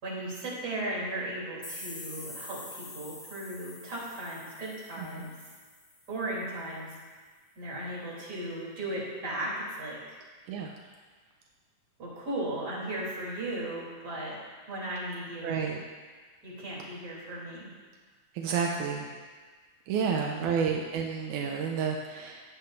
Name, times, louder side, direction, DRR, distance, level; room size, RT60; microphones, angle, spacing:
voice 1, 0.0-5.3 6.1-7.0 7.6-10.2 12.0-14.4 14.7-15.7 16.4-17.7, right 1 dB, 30° right, -7 dB, 3.9 m, -36 dB
sound 1, 1.6-6.3, left 2 dB, 20° left, 1.6 m, -46 dB
voice 2, 15.4-15.8 18.3-19.1 19.9-22.4, right 6 dB, 80° right, 1 dB, 2.1 m, -30 dB
16.0 x 10.5 x 2.7 m, 1.5 s
omnidirectional pair, 3.6 m